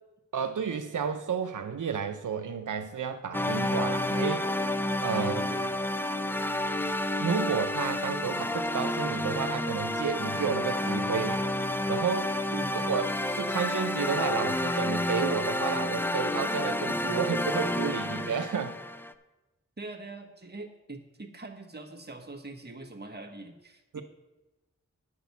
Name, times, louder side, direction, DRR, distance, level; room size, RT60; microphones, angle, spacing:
voice 1, 0.3-4.5 5.0-5.5 7.2-11.4 11.9-12.3 12.7-13.1 13.4-18.8 23.9-24.0, right 6 dB, 85° right, 0.6 m, -31 dB
sound 1, 3.3-19.1, left 1 dB, 5° left, 0.5 m, -30 dB
voice 2, 5.1-5.8 12.5-12.8 19.8-24.0, right 2 dB, 35° right, 1.3 m, -43 dB
9.3 x 6.0 x 7.0 m
wide cardioid pair, 70°, 30 cm